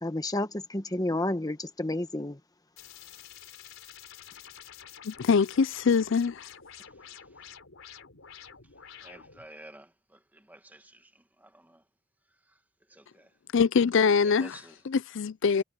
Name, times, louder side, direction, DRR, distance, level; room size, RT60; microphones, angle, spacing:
voice 1, 0.0-2.4, left 1 dB, 20° left, 1.3 m, -30 dB
sound 1, 2.8-9.5, left 8 dB, 85° left, 3.7 m, -49 dB
voice 2, 5.0-6.5 13.5-14.6 14.9-15.6, left 5 dB, 65° left, 0.5 m, -24 dB
voice 3, 9.0-11.1 11.4-11.8 12.9-13.3 14.3-14.7, right 1 dB, 10° right, 2.2 m, -51 dB
head